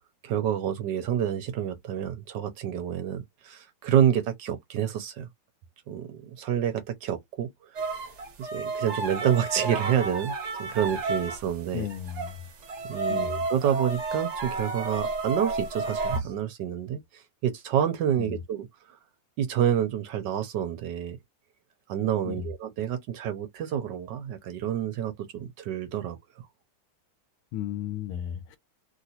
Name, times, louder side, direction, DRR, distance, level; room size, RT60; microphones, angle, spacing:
voice 1, 0.2-5.3 5.9-8.0 8.4-11.9 12.9-19.0 19.4-21.2 21.9-26.2, right 9 dB, 70° right, 1.1 m, -28 dB
sound 1, 7.7-11.5 11.9-16.2, right 3 dB, 50° right, 0.8 m, -31 dB
voice 2, 11.7-12.4 13.1-13.4 18.2-18.4 22.2-22.5 27.5-28.6, left 10 dB, 80° left, 1.4 m, -34 dB
3.1 x 2.8 x 2.7 m
omnidirectional pair, 2.2 m